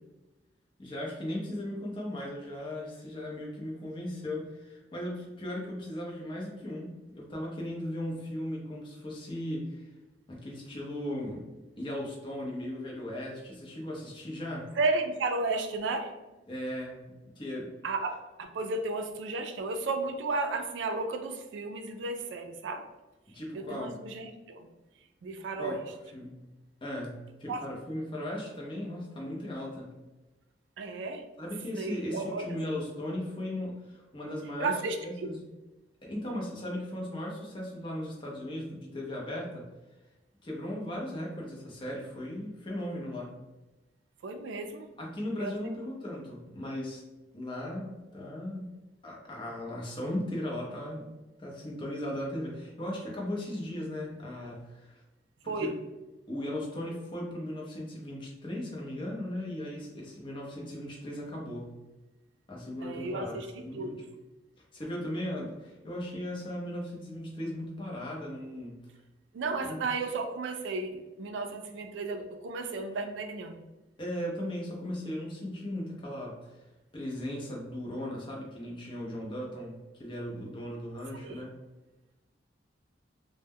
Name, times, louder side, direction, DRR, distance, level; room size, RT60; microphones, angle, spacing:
voice 1, 0.8-9.9 10.3-11.4 11.8-14.7 16.5-17.1 17.3-17.7 23.3-23.9 25.6-25.8 26.1-26.4 26.8-29.9 31.4-34.7 35.0-35.4 36.0-39.7 40.4-43.3 45.0-47.0 47.3-48.7 49.0-51.1 51.4-55.0 55.4-55.7 56.3-61.7 62.5-64.0 64.7-68.8 69.6-69.8 74.0-76.4 76.9-81.5, left 1 dB, 30° left, -3 dB, 0.6 m, -37 dB
voice 2, 14.8-16.1 17.8-22.8 23.7-24.7 25.2-25.8 27.5-27.6 30.8-31.2 31.8-32.5 34.6-35.3 44.2-44.9 45.4-45.6 55.5-55.7 62.8-64.1 69.3-73.6 81.2-81.4, right 3 dB, 75° right, 6 dB, 0.3 m, -33 dB
2.1 x 2.1 x 3.4 m, 1.1 s
head